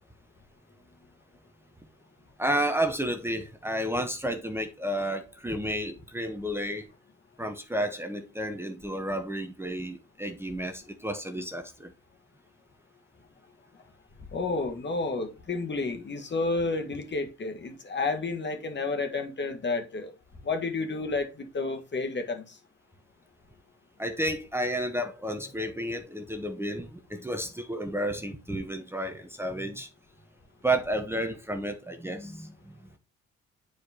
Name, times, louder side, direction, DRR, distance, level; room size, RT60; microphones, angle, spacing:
voice 1, 2.4-6.9 7.4-11.9 24.0-29.9 30.6-32.5, right 1 dB, 10° right, 1.1 m, -31 dB
voice 2, 14.3-20.1 20.4-22.5, left 3 dB, 35° left, 1.7 m, -31 dB
8.9 x 5.0 x 2.9 m
cardioid pair, 90°, 30 cm